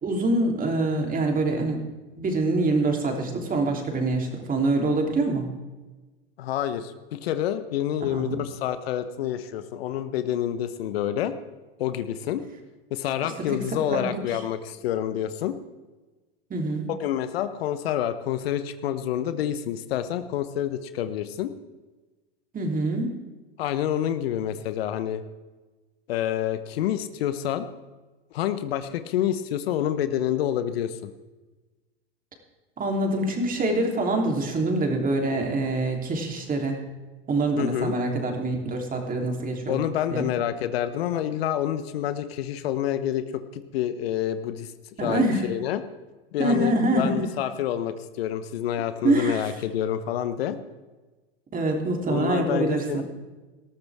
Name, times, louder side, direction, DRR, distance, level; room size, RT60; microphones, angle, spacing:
voice 1, 0.0-1.8 2.2-5.5 8.1-8.4 13.5-14.4 16.5-16.9 22.5-23.1 32.8-36.8 37.3-39.8 40.1-40.3 45.0-45.5 46.4-47.3 49.0-49.5 51.5-53.0, right 2 dB, 25° right, 2 dB, 3.3 m, -25 dB
voice 2, 6.4-11.3 11.8-12.4 12.9-15.5 16.9-21.5 23.6-25.2 26.1-27.7 28.3-31.1 37.6-37.9 39.7-44.7 45.0-45.8 46.3-50.6 52.1-53.0, left 11 dB, 75° left, 12 dB, 1.0 m, -28 dB
19.5 x 13.5 x 3.6 m, 1.2 s
hypercardioid pair, 95°, 30 cm